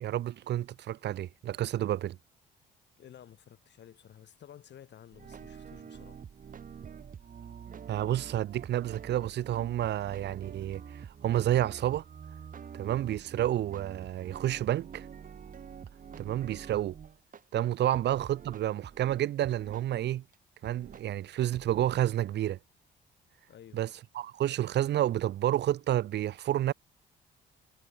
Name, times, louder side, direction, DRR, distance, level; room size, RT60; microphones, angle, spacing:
voice 1, 0.0-2.2 7.9-12.0 12.7-15.1 16.2-17.0 17.5-20.2 20.6-22.6 23.7-23.9 24.1-26.7, right 12 dB, 60° right, 0.5 m, -30 dB
voice 2, 3.0-6.3 17.8-18.0 23.5-23.8, left 10 dB, 60° left, 2.2 m, -53 dB
sound 1, 5.1-17.4 17.9-19.9 20.3-20.4 20.6-21.1 21.5-21.9, right 7 dB, 45° right, 1.2 m, -46 dB
cardioid pair, 90°, 20 cm